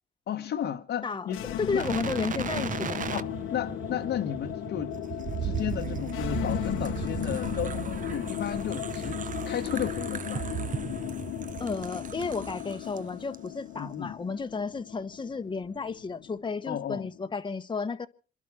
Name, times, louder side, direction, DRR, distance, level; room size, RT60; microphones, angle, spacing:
voice 1, 0.3-1.4 1.7-1.9 3.1-5.0 5.4-10.5 13.7-14.2 16.6-17.1, left 9 dB, 65° left, 1.1 m, -34 dB
sound 1, 1.2-17.3, left 13 dB, 85° left, 0.9 m, -36 dB
voice 2, 1.6-3.0 11.6-18.1, left 4 dB, 25° left, 1.0 m, -32 dB
sound 2, 1.8-13.0 13.3-13.5, right 8 dB, 40° right, 0.7 m, -36 dB
27.0 x 11.0 x 4.8 m
cardioid pair, 90°, 20 cm